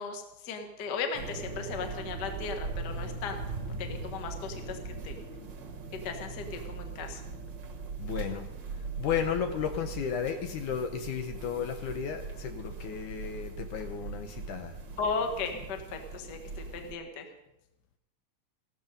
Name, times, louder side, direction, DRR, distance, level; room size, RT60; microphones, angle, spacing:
voice 1, 0.0-3.4 3.8-5.2 6.0-7.2 15.0-17.3, left 4 dB, 45° left, 5 dB, 1.4 m, -36 dB
sound 1, 1.1-16.9, right 4 dB, 45° right, 1.5 m, -40 dB
voice 2, 8.0-8.5 9.0-14.8, left 8 dB, 70° left, 6 dB, 2.2 m, -33 dB
15.5 x 13.5 x 5.3 m, 0.88 s
omnidirectional pair, 4.0 m